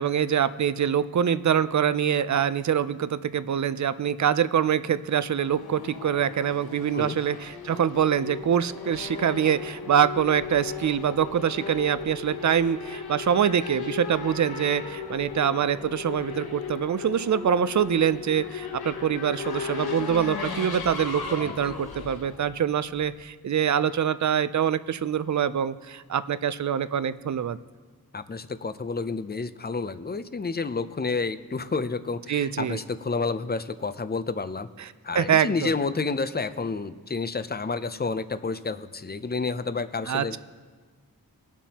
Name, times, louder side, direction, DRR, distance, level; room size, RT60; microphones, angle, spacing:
voice 1, 0.0-27.6 32.3-32.8 34.8-34.9 35.1-35.7 40.1-40.4, right 8 dB, 50° right, 14 dB, 0.5 m, -25 dB
Race car auto racing / Accelerating revving vroom, 5.1-23.3, left 6 dB, 85° left, 0.9 m, -36 dB
voice 2, 21.4-21.7 28.1-34.7 35.0-40.4, left 4 dB, 25° left, 12 dB, 0.5 m, -30 dB
20.5 x 7.0 x 2.9 m, 1.5 s
wide cardioid pair, 55°, 37 cm